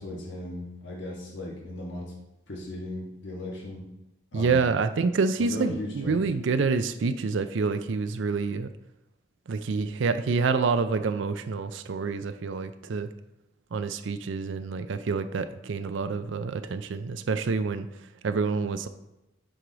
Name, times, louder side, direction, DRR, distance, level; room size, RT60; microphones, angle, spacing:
voice 1, 0.0-2.1 2.5-3.9 4.3-4.6 5.5-6.2, left 1 dB, 65° left, -2 dB, 1.4 m, -37 dB
voice 2, 4.3-8.7 9.5-13.1 13.7-17.9 18.2-18.9, right 4 dB, 70° right, 10 dB, 0.4 m, -27 dB
7.7 x 4.8 x 3.9 m, 0.94 s
head